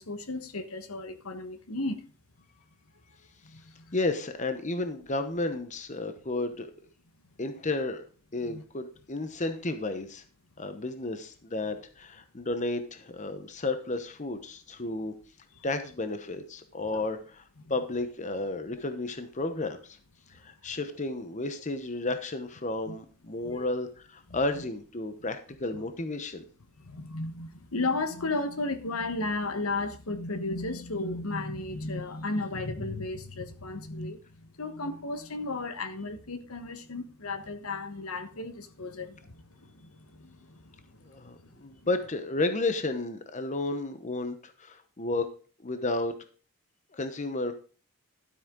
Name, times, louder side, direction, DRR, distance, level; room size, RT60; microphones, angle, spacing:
voice 1, 0.0-2.0 3.4-4.0 8.5-8.6 16.9-17.0 22.9-23.0 23.4-23.6 26.8-41.1, left 2 dB, 75° left, 1.3 m, -34 dB
voice 2, 3.9-6.7 7.4-8.0 8.3-10.2 10.6-15.1 15.6-17.4 17.7-20.0 20.3-26.4 41.0-45.3 45.6-46.1 46.9-47.5, left 2 dB, 35° left, 1.0 m, -32 dB
12.0 x 8.4 x 3.8 m
head